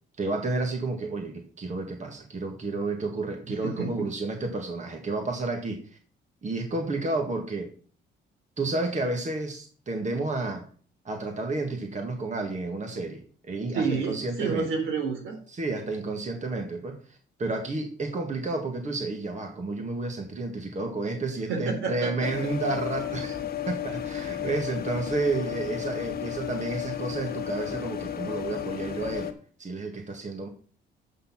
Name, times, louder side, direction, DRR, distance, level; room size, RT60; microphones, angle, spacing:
voice 1, 0.2-5.8 6.4-7.7 8.6-10.6 11.1-14.7 15.5-23.4 23.7-29.3 29.6-30.5, right 3 dB, 35° right, 4 dB, 1.8 m, -31 dB
voice 2, 3.5-4.1 13.7-15.4 21.5-22.3, right 5 dB, 80° right, 3 dB, 3.7 m, -29 dB
sound 1, 22.2-29.3, left 10 dB, 50° left, 1.4 m, -33 dB
8.3 x 6.2 x 5.9 m, 0.44 s
cardioid pair, 90°, 20 cm